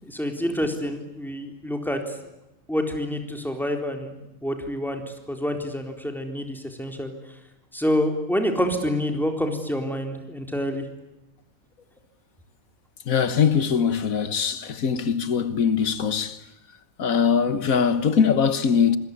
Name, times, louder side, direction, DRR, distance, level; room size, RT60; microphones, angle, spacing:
voice 1, 0.0-2.1 2.7-5.0 5.3-7.1 7.7-10.8, equal, ahead, 4.0 m, -27 dB
voice 2, 13.1-16.4 17.0-19.0, left 7 dB, 90° left, 1.7 m, -22 dB
26.5 x 21.5 x 9.7 m
omnidirectional pair, 1.4 m